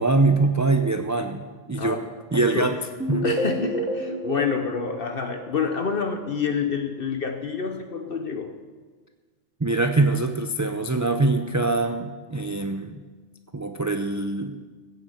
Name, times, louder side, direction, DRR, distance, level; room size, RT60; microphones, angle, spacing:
voice 1, 0.0-2.0 2.3-2.8 3.1-3.2 9.6-13.0 13.5-14.6, right 3 dB, 25° right, 6 dB, 0.4 m, -23 dB
sound 1, 3.0-5.9, right 1 dB, 5° right, 2.5 m, -29 dB
voice 2, 3.2-8.5, left 6 dB, 55° left, 5 dB, 1.0 m, -28 dB
15.5 x 7.9 x 7.8 m, 1.4 s
omnidirectional pair, 1.2 m